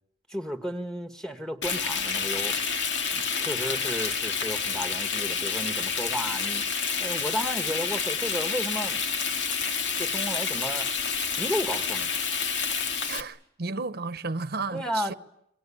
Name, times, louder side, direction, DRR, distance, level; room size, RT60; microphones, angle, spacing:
voice 1, 0.3-2.6 3.1-6.6 7.0-9.0 10.0-10.9 11.4-12.1 14.7-15.1, equal, 5° left, 1.8 m, -33 dB
Frying (food), 1.6-13.2, left 6 dB, 80° left, 2.2 m, -29 dB
voice 2, 13.1-15.1, right 3 dB, 60° right, 1.0 m, -33 dB
28.5 x 23.5 x 8.7 m
head